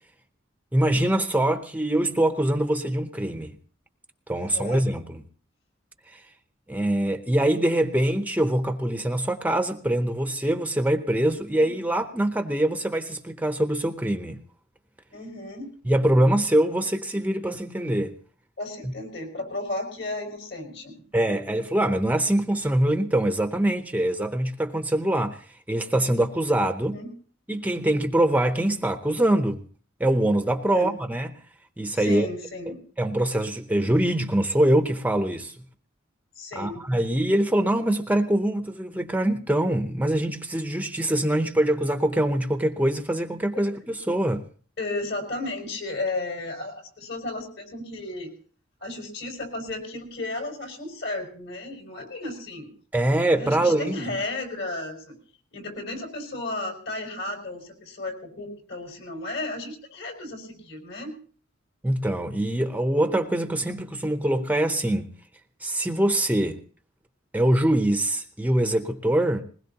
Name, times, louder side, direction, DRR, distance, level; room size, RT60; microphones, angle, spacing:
voice 1, 0.7-3.5 4.3-5.2 6.1-6.2 6.7-14.4 15.9-18.2 18.8-18.9 21.1-27.0 27.5-29.6 30.0-31.3 31.8-32.3 33.0-35.5 36.6-44.4 52.9-54.0 61.8-65.1 65.6-66.6 67.3-69.4, right 1 dB, 10° right, 0.7 m, -24 dB
voice 2, 4.4-4.8 11.6-11.7 15.1-15.7 18.6-21.0 26.9-27.1 30.7-31.0 31.9-32.8 36.4-36.8 43.5-43.6 44.8-48.3 48.8-52.7 53.3-55.1 55.5-61.1 69.3-69.4, left 2 dB, 60° left, 5.7 m, -34 dB
21.0 x 20.0 x 2.9 m
head